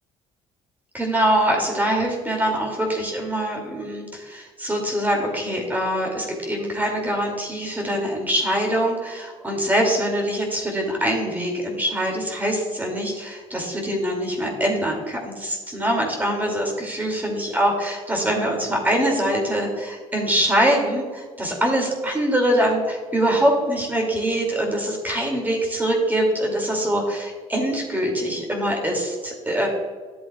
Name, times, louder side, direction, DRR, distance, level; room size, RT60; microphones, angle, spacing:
voice 1, 0.9-29.7, right 1 dB, 15° right, 0 dB, 2.5 m, -23 dB
11.0 x 7.8 x 2.3 m, 1.5 s
supercardioid pair, 75°, 13 cm